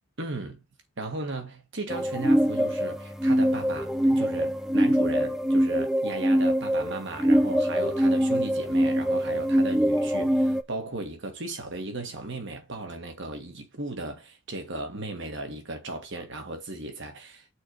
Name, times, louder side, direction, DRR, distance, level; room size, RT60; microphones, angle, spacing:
voice 1, 0.2-0.6 1.0-17.5, right 2 dB, 65° right, 1.8 m, -36 dB
sound 1, 1.9-10.6, equal, ahead, 0.7 m, -24 dB
6.3 x 4.6 x 5.6 m
head